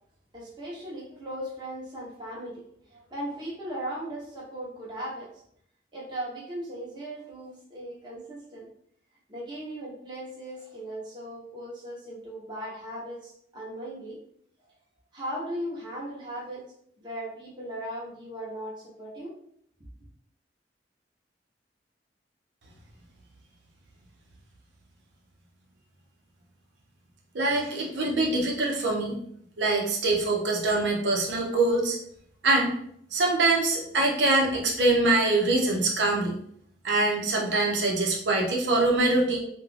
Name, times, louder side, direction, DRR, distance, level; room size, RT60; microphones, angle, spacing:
voice 1, 0.3-2.6 2.9-5.3 5.9-8.7 9.3-14.2 15.1-16.7 17.0-19.3, right 1 dB, 25° right, -6 dB, 0.7 m, -37 dB
voice 2, 27.3-29.2 29.6-32.0 32.4-32.7 33.1-36.4 36.8-39.4, right 2 dB, 90° right, 0 dB, 0.6 m, -24 dB
2.4 x 2.2 x 3.2 m, 0.66 s
head